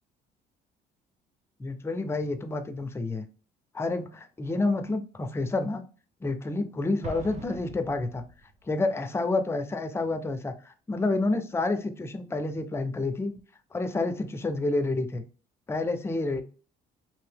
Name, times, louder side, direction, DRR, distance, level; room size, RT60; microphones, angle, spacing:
voice 1, 1.6-3.3 3.7-5.8 6.2-8.2 8.7-13.3 13.7-15.2 15.7-16.4, left 2 dB, 15° left, 0.4 m, -29 dB
Explosion, 7.0-8.6, right 3 dB, 40° right, 0.6 m, -42 dB
2.7 x 2.6 x 3.4 m
cardioid pair, 110°, 17 cm